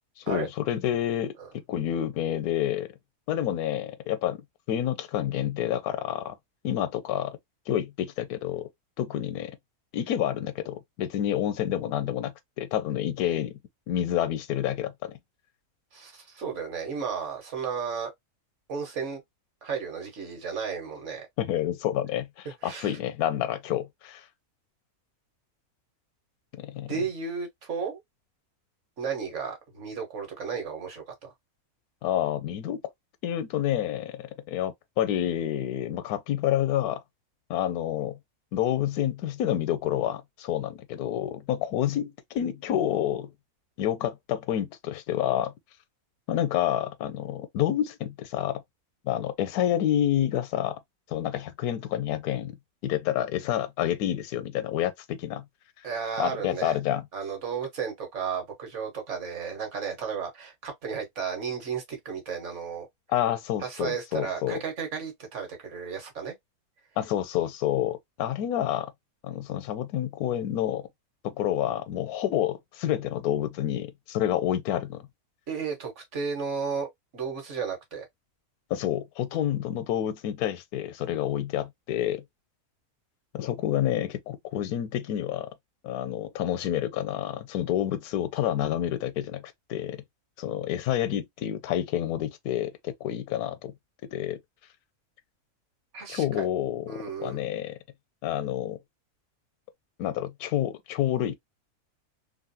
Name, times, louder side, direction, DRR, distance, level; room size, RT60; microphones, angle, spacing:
voice 1, 0.2-1.3 1.7-2.9 3.3-4.4 4.7-6.3 6.6-7.4 7.7-8.7 9.0-9.5 9.9-12.3 12.6-13.5 13.9-15.2 21.4-24.2 26.5-26.9 32.0-32.8 33.2-37.0 37.5-38.2 38.5-43.3 43.8-45.5 46.3-48.6 49.0-50.8 51.1-52.5 52.8-55.4 56.2-57.0 63.1-64.6 67.0-68.9 69.2-70.9 71.2-75.0 78.7-82.2 83.3-85.5 85.8-89.4 89.7-90.0 90.4-93.7 94.1-94.4 96.1-97.8 98.2-98.8 100.0-101.4, left 11 dB, 80° left, 1.1 m, -28 dB
voice 2, 15.9-18.1 18.7-19.2 19.6-21.3 22.6-23.0 26.9-28.0 29.0-31.3 55.8-56.8 57.1-62.9 63.6-66.4 75.5-76.9 77.1-78.1 95.9-96.5 96.9-97.4, right 6 dB, 55° right, 1.4 m, -33 dB
2.9 x 2.5 x 2.6 m
omnidirectional pair, 1.6 m